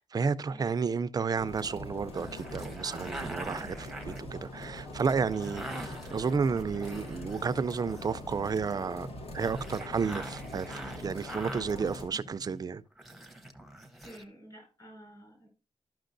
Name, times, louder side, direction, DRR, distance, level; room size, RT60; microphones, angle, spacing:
voice 1, 0.0-9.1 9.3-12.8, right 5 dB, 35° right, 0.3 m, -32 dB
sound 1, 1.4-12.1, left 1 dB, 65° left, 1.1 m, -43 dB
sound 2, 2.1-8.3 9.3-12.7 13.0-14.2, right 1 dB, ahead, 0.7 m, -44 dB
voice 2, 14.0-15.5, right 1 dB, 40° left, 4.9 m, -50 dB
12.5 x 5.9 x 2.5 m
wide cardioid pair, 175°, 11 cm